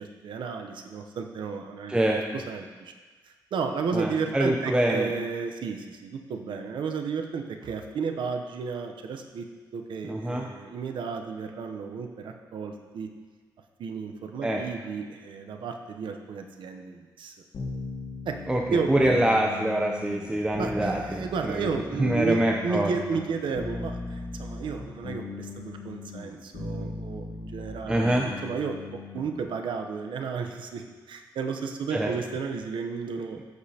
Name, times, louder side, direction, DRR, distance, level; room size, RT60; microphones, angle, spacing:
voice 1, 0.0-2.9 3.5-9.5 9.7-13.1 13.8-17.4 18.3-18.4 18.7-19.2 20.6-28.8 29.1-33.4, right 5 dB, 90° right, 5 dB, 0.7 m, -33 dB
voice 2, 3.9-5.1 10.0-10.5 14.4-14.6 18.5-21.7 22.0-22.9 27.9-28.3 31.9-32.1, right 1 dB, 10° right, -1 dB, 0.6 m, -25 dB
sound 1, 17.5-29.4, left 3 dB, 70° left, 2.0 m, -38 dB
14.0 x 5.1 x 2.8 m, 1.4 s
wide cardioid pair, 110°, 8 cm